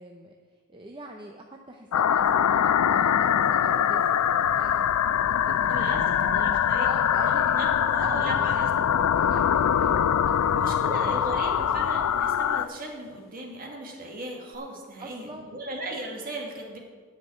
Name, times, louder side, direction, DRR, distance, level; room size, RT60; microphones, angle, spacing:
voice 1, 0.0-4.9 5.2-7.7 8.0-12.0 15.0-15.6, right 1 dB, 20° right, 1 dB, 0.7 m, -44 dB
sound 1, 1.9-12.6, left 9 dB, 90° left, 0.4 m, -23 dB
sound 2, 2.4-13.3 14.5-14.6, left 4 dB, 45° left, 1.0 m, -46 dB
voice 2, 5.7-6.9 7.3-8.7 10.4-16.8, right 1 dB, 40° right, 0 dB, 2.1 m, -37 dB
10.0 x 5.9 x 8.6 m, 1.5 s
head